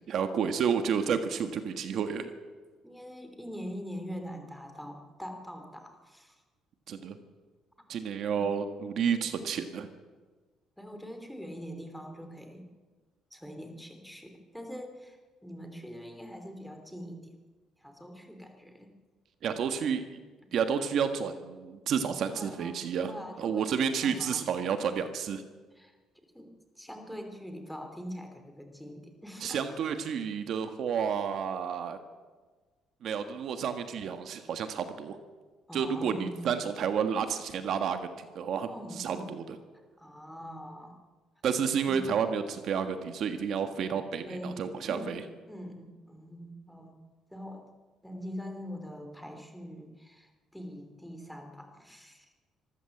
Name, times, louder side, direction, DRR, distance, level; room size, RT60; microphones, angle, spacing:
voice 1, 0.1-2.3 6.9-7.2 7.9-9.9 19.4-20.2 20.5-25.4 29.4-32.0 33.0-35.2 35.7-38.7 39.0-39.2 41.4-45.2, right 7 dB, 55° right, 8 dB, 1.5 m, -30 dB
voice 2, 2.8-6.4 8.3-8.6 10.8-12.7 13.3-17.3 17.8-18.9 22.3-23.7 24.0-24.6 25.7-25.9 26.3-29.8 35.7-36.5 38.7-39.4 40.0-41.0 41.8-42.1 44.2-45.2 45.5-47.0 47.3-47.6 48.0-52.3, equal, ahead, 5 dB, 3.1 m, -43 dB
25.5 x 14.5 x 7.9 m, 1.4 s
cardioid pair, 130°, 0 cm